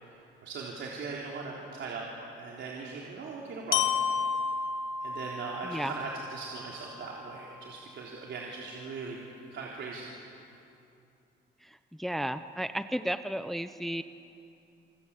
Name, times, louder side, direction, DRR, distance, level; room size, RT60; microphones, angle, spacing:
voice 1, 0.4-2.0 2.3-3.8 5.0-9.2 9.5-10.1, right 4 dB, 65° right, -3 dB, 3.8 m, -39 dB
Glockenspiel, 3.7-7.7, left 6 dB, 80° left, 1.4 m, -33 dB
voice 2, 5.6-5.9 11.6-14.0, equal, ahead, 10 dB, 0.8 m, -33 dB
28.5 x 25.0 x 8.4 m, 2.7 s
cardioid pair, 90°, 20 cm